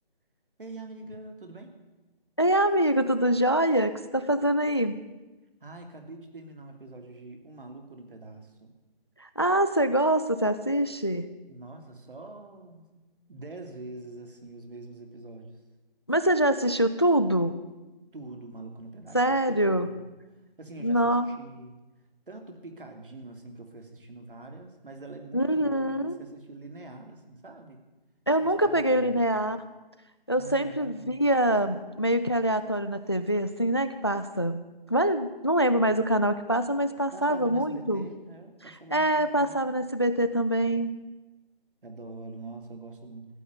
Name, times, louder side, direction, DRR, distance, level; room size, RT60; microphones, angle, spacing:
voice 1, 0.6-1.7 5.6-8.7 11.5-13.0 13.3-15.6 18.1-20.0 20.3-21.8 22.3-27.8 28.4-29.2 30.3-31.3 37.1-39.6 41.8-43.3, right 2 dB, 65° right, 5 dB, 3.2 m, -44 dB
voice 2, 2.4-5.0 9.2-11.2 16.1-17.6 19.1-19.9 20.8-21.3 25.3-26.2 28.3-29.6 30.3-34.6 34.9-38.1 38.7-40.9, right 1 dB, 30° left, 12 dB, 0.5 m, -25 dB
15.5 x 9.1 x 9.6 m, 1.1 s
figure-of-eight pair, 175°, 29 cm